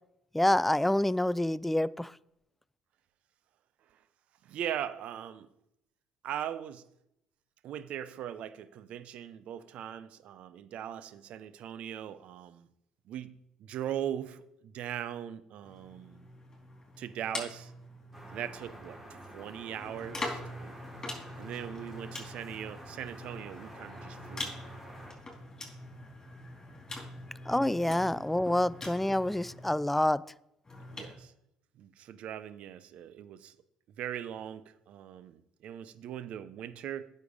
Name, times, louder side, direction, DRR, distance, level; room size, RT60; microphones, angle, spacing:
voice 1, 0.3-2.1 27.5-30.2, left 1 dB, 5° left, 20 dB, 0.3 m, -27 dB
voice 2, 4.4-5.5 6.2-6.8 7.6-12.7 13.1-13.3 13.6-16.3 17.0-17.7 18.3-20.8 21.4-24.5 30.9-31.3 31.8-33.5 34.0-37.0, right 10 dB, 60° right, 14 dB, 0.7 m, -40 dB
sound 1, 15.6-18.9 19.7-29.8 30.6-31.1, left 2 dB, 25° left, 4.0 m, -44 dB
sound 2, 18.1-25.1, right 1 dB, 15° right, 3.7 m, -49 dB
9.4 x 6.7 x 5.2 m, 0.81 s
hypercardioid pair, 60°, 2 cm